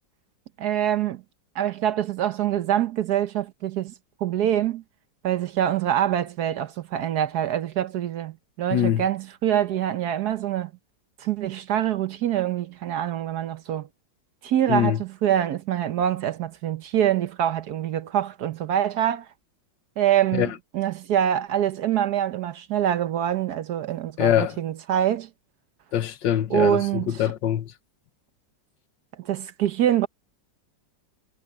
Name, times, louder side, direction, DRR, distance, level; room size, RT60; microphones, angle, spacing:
voice 1, 0.6-1.2 1.5-3.9 4.2-4.8 5.2-10.7 11.2-13.9 14.4-19.3 20.0-25.3 26.5-27.2 29.2-30.1, right 10 dB, 65° right, 1.2 m, -25 dB
voice 2, 8.7-9.0 14.7-15.0 20.3-20.5 24.2-24.6 25.9-27.7, left 11 dB, 75° left, 1.6 m, -23 dB
omnidirectional pair, 2.0 m